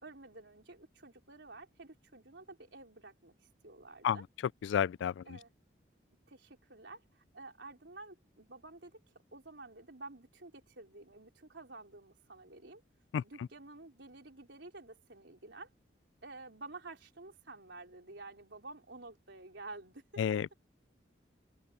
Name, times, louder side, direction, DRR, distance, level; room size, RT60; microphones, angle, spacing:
voice 1, 0.0-4.3 5.3-5.5 6.3-9.0 9.3-12.8 13.2-15.7 16.2-20.2, right 3 dB, 80° right, 3.8 m, -51 dB
voice 2, 4.7-5.2 13.1-13.2 20.2-20.5, left 8 dB, 90° left, 0.3 m, -30 dB
head